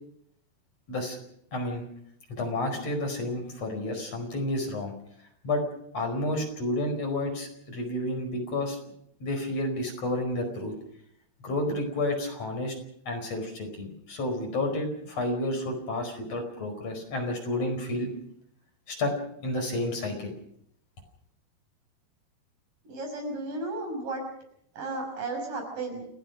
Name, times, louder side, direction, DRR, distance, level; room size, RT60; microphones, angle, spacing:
voice 1, 1.5-1.8 2.3-4.9 5.4-5.6 5.9-8.8 9.2-10.7 11.4-12.8 13.1-18.1 18.9-19.2 19.4-20.3, left 1 dB, 40° left, 3 dB, 5.8 m, -30 dB
voice 2, 22.9-24.2 24.8-26.1, right 2 dB, 50° right, 3 dB, 7.3 m, -34 dB
29.5 x 15.0 x 6.3 m, 0.72 s
omnidirectional pair, 4.8 m